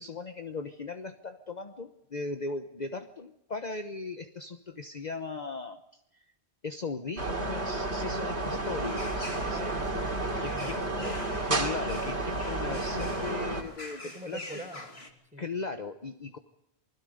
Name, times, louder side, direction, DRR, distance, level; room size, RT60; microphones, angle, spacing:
voice 1, 0.0-6.2 6.6-9.7 10.4-10.8 11.4-14.4 15.4-16.4, left 4 dB, 40° left, 6 dB, 1.2 m, -38 dB
sound 1, 7.2-13.6, right 2 dB, 80° right, 3.0 m, -31 dB
sound 2, 8.4-15.1, left 2 dB, 70° left, 2.8 m, -46 dB
voice 2, 9.4-10.1 10.4-11.3 14.1-15.4, right 1 dB, 5° right, 4 dB, 4.5 m, -43 dB
28.0 x 20.5 x 5.2 m, 0.80 s
omnidirectional pair, 1.1 m